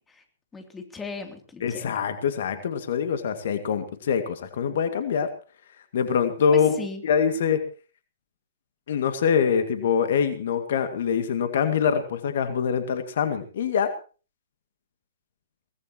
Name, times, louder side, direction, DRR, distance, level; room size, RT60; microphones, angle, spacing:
voice 1, 0.5-1.9 6.5-7.1, left 4 dB, 10° left, 5 dB, 3.1 m, -37 dB
voice 2, 1.6-5.3 5.9-6.8 7.0-7.6 8.9-13.9, left 7 dB, 60° left, 9 dB, 2.2 m, -24 dB
23.0 x 18.5 x 3.1 m, 0.37 s
figure-of-eight pair, 115°, 0 cm